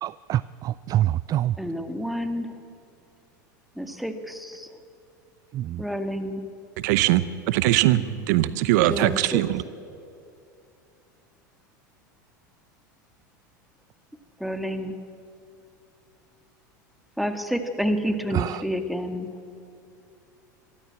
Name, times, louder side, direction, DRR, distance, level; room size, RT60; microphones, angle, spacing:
voice 1, 0.0-1.6 5.5-5.8 18.3-18.6, right 13 dB, 35° right, 19 dB, 0.4 m, -26 dB
voice 2, 1.6-2.5 3.8-4.7 5.8-6.4 8.8-9.4 14.4-15.0 17.2-19.3, equal, ahead, 8 dB, 1.8 m, -29 dB
voice 3, 6.8-8.0 8.3-9.6, right 15 dB, 65° right, 16 dB, 0.8 m, -21 dB
24.0 x 13.0 x 8.6 m, 2.6 s
hypercardioid pair, 90°, 10 cm